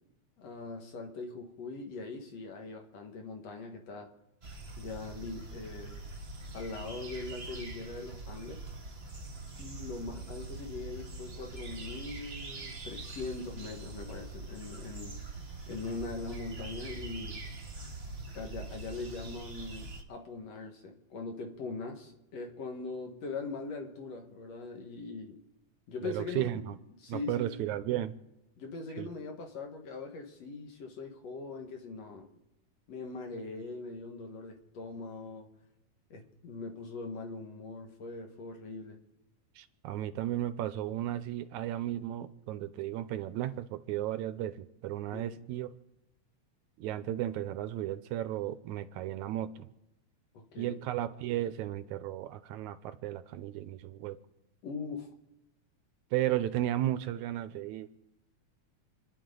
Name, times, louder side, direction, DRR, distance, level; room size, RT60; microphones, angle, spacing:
voice 1, 0.4-4.1 4.8-6.0 6.5-8.7 9.6-15.2 15.7-17.4 18.3-25.4 25.9-26.7 27.0-27.6 28.6-32.3 32.9-35.5 36.1-39.0 45.1-45.4 50.3-50.8 54.6-55.1, left 3 dB, 60° left, 2.7 m, -41 dB
sound 1, 4.4-20.0, right 3 dB, 30° right, 1.3 m, -43 dB
voice 2, 26.0-26.8 27.1-28.1 29.0-29.1 39.6-45.7 46.8-49.7 50.6-54.2 56.1-57.9, right 13 dB, 85° right, 2.1 m, -34 dB
28.0 x 11.0 x 3.9 m
omnidirectional pair, 3.4 m